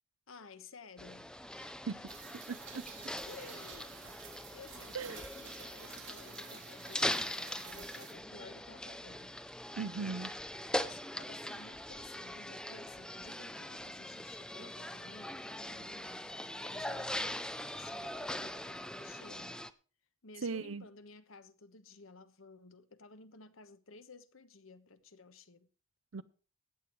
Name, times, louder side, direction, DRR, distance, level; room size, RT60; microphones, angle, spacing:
voice 1, 0.3-1.8 3.3-4.0 4.5-9.3 10.7-16.3 16.6-19.6 20.2-25.7, left 4 dB, 90° left, 1.2 m, -55 dB
sound 1, 1.0-19.7, left 1 dB, 5° left, 0.6 m, -41 dB
Rain, 2.1-8.1, right 7 dB, 70° right, 3.5 m, -51 dB
voice 2, 2.5-2.8 4.9-5.2 9.8-10.3 20.4-20.8 26.1-26.2, right 5 dB, 85° right, 0.6 m, -38 dB
15.0 x 9.3 x 4.6 m
head